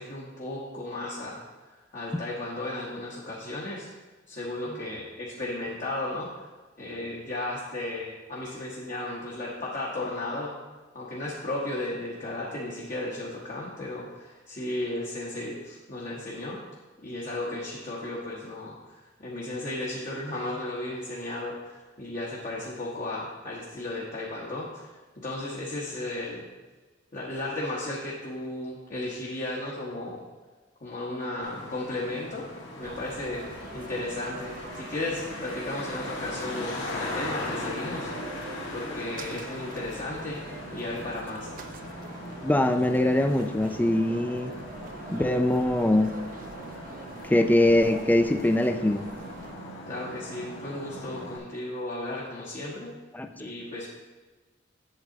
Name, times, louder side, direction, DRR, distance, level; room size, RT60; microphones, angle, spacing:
voice 1, 0.0-1.4 1.9-3.9 4.3-6.3 6.8-10.5 10.9-16.6 17.0-24.9 25.2-26.5 27.1-30.2 30.8-32.4 32.8-33.5 33.7-38.4 38.7-40.4 40.7-41.5 49.9-52.9 53.4-53.9, left 2 dB, 45° left, -5 dB, 1.3 m, -34 dB
Traffic noise roadway noise, 31.4-51.4, left 1 dB, 70° left, 1.7 m, -39 dB
sound 1, 32.8-49.5, right 3 dB, 45° right, 0.5 m, -44 dB
voice 2, 42.4-44.5 45.1-46.2 47.2-49.1 53.1-53.5, left 1 dB, 10° left, 7 dB, 0.3 m, -23 dB
8.1 x 7.5 x 3.9 m, 1.3 s
head